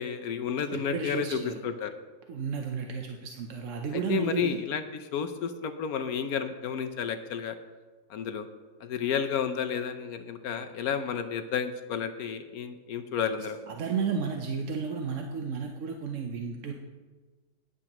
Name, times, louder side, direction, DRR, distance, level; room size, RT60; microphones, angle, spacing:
voice 1, 0.0-1.9 4.1-4.8 5.1-7.5 8.1-8.5 8.8-13.6, left 7 dB, 65° left, 9 dB, 1.0 m, -31 dB
voice 2, 0.7-1.6 2.3-4.6 13.7-16.7, right 5 dB, 55° right, 3 dB, 0.9 m, -32 dB
14.5 x 9.8 x 3.0 m, 1.3 s
omnidirectional pair, 1.9 m